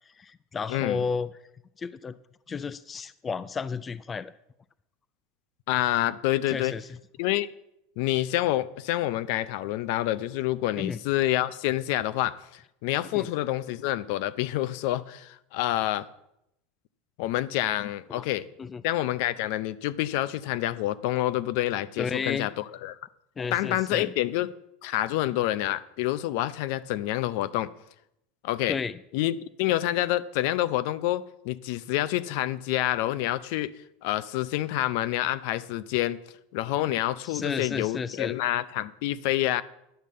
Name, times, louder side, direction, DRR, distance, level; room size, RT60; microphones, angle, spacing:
voice 1, 0.0-1.3 1.8-2.2 2.5-4.3 6.5-7.0 10.8-11.0 13.1-13.3 18.1-18.3 18.6-18.8 22.0-22.5 23.4-24.1 28.7-29.0 37.2-38.4, left 5 dB, 20° left, 0.3 m, -32 dB
voice 2, 0.7-1.0 5.7-6.7 7.2-7.5 8.0-16.1 17.2-18.5 18.8-23.0 23.5-24.5 24.8-27.7 28.4-28.8 29.1-33.7 34.0-36.2 36.5-39.6, left 15 dB, 65° left, 0.6 m, -27 dB
10.0 x 5.4 x 7.6 m
supercardioid pair, 125°, 0 cm